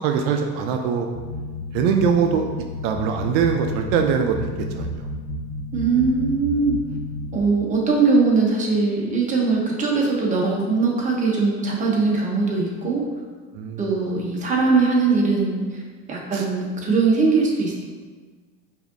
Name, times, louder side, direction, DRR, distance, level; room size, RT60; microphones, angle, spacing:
voice 1, 0.0-1.1 1.7-2.5 2.8-4.4 4.7-5.1 13.5-13.8 16.3-16.4, right 7 dB, 85° right, 4 dB, 0.4 m, -22 dB
sound 1, 1.1-7.4, left 2 dB, 45° left, 0.4 m, -31 dB
voice 2, 5.7-6.8 7.3-13.0 13.8-15.8 16.1-17.7, right 4 dB, 25° right, -3 dB, 0.9 m, -21 dB
4.9 x 2.7 x 2.6 m, 1.4 s
cardioid pair, 130°, 29 cm